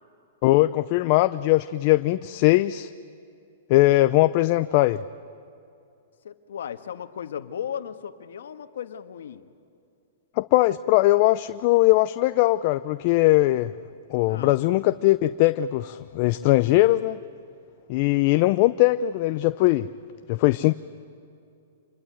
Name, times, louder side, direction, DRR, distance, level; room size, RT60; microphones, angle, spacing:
voice 1, 0.4-2.9 3.7-5.0 10.4-13.7 14.1-17.2 17.9-19.9 20.3-20.7, left 17 dB, 40° left, 12 dB, 0.5 m, -20 dB
voice 2, 6.2-9.4 14.3-14.6 20.7-20.8, left 8 dB, 75° left, 9 dB, 1.5 m, -36 dB
27.5 x 21.5 x 9.2 m, 2.6 s
hypercardioid pair, 145°, 0 cm